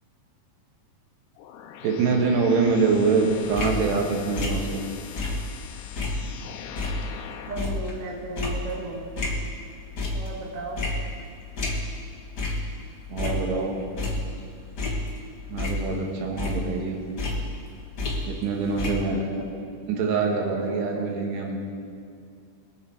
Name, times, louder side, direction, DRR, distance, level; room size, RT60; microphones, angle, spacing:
sound 1, 1.4-7.8, left 8 dB, 80° left, 2.6 m, -41 dB
voice 1, 1.8-4.8 13.1-13.7 15.5-17.0 18.2-19.2 19.9-21.6, right 4 dB, 85° right, 1 dB, 3.7 m, -24 dB
sound 2, 3.3-5.7 6.0-9.6 10.0-10.4 10.8-12.1 12.4-12.7 13.0-14.4 14.8-16.1 16.4-18.5 18.8-18.9, left 2 dB, 65° left, 1.0 m, -30 dB
voice 2, 7.4-9.1 10.1-10.8 13.2-13.7 18.7-19.6 20.4-21.0, right 2 dB, 65° right, -1 dB, 0.7 m, -35 dB
22.5 x 8.5 x 4.7 m, 2.3 s
omnidirectional pair, 4.7 m